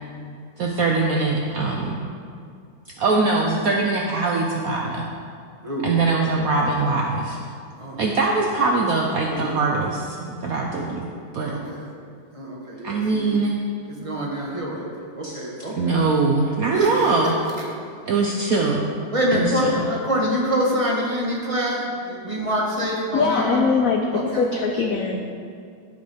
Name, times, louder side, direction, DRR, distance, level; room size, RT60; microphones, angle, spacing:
voice 1, 0.6-2.0 3.0-5.1 5.8-7.4 8.0-11.1 11.3-11.6 12.8-13.6 15.2-15.4 15.7-17.3 18.1-18.8 19.3-19.7, right 3 dB, 70° right, 0 dB, 0.9 m, -22 dB
voice 2, 11.5-11.9 12.3-13.3 13.9-16.0 16.7-17.2 19.1-23.7 24.1-24.5, equal, 20° right, -3 dB, 1.0 m, -26 dB
voice 3, 23.1-25.2, left 4 dB, 85° left, 2 dB, 0.7 m, -22 dB
14.5 x 5.4 x 3.4 m, 2.3 s
omnidirectional pair, 2.2 m